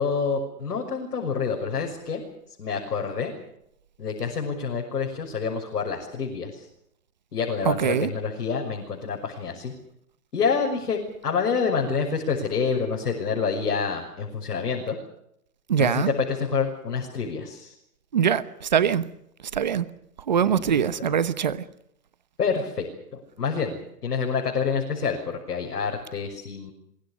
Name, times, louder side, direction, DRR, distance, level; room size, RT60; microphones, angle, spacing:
voice 1, 0.0-2.2 2.6-3.3 4.0-6.6 7.3-9.7 10.3-15.0 15.8-17.7 20.5-20.8 22.4-22.9 23.1-26.7, left 5 dB, 80° left, 6.5 m, -27 dB
voice 2, 7.6-8.1 15.7-16.1 18.1-19.0 19.5-19.9 20.3-21.6, right 8 dB, 30° right, 1.0 m, -23 dB
24.5 x 23.5 x 6.5 m
hypercardioid pair, 175°, 47 cm